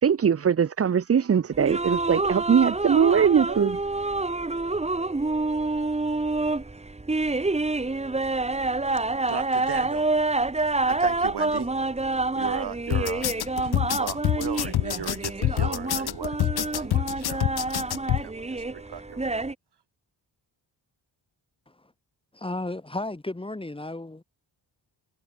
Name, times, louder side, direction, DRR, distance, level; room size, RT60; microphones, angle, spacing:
voice 1, 0.0-3.8, right 7 dB, 35° right, 0.7 m, -21 dB
sound 1, 1.5-19.5, right 2 dB, 15° right, 1.9 m, -27 dB
voice 2, 9.3-10.2 10.6-11.7 12.4-17.7 18.2-19.5, right 8 dB, 65° right, 3.7 m, -37 dB
sound 2, 12.9-18.2, left 12 dB, 60° left, 0.6 m, -26 dB
voice 3, 22.3-24.2, left 2 dB, 10° left, 3.7 m, -33 dB
wide cardioid pair, 175°, 43 cm